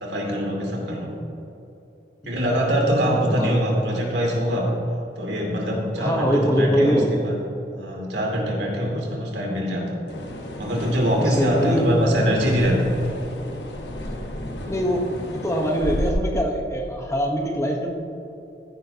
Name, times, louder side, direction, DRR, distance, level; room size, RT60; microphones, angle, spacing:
voice 1, 0.0-1.1 2.2-4.7 5.2-7.3 7.8-10.0 10.6-12.7, equal, 80° right, -1 dB, 2.7 m, -23 dB
voice 2, 6.0-7.3 11.2-11.9 14.7-15.0 15.3-17.9, equal, 15° left, 1 dB, 1.1 m, -23 dB
sound 1, 10.1-16.1, left 1 dB, 75° left, 1.3 m, -32 dB
15.0 x 10.0 x 2.9 m, 2.9 s
head